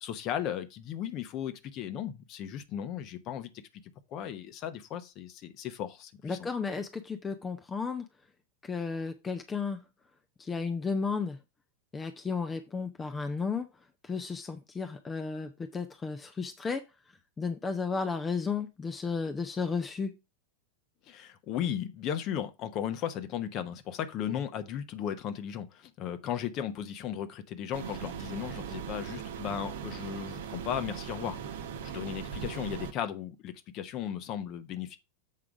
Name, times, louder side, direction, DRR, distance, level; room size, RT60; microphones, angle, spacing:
voice 1, 0.0-3.5 4.1-6.4 21.1-35.0, left 9 dB, 35° left, 1.0 m, -36 dB
voice 2, 6.2-8.1 8.6-9.8 10.4-11.4 11.9-13.7 14.0-16.8 17.4-20.2, left 5 dB, 15° left, 0.8 m, -33 dB
sound 1, 27.7-32.9, right 7 dB, 55° right, 1.0 m, -39 dB
7.7 x 4.9 x 4.8 m
figure-of-eight pair, 90°, 0 cm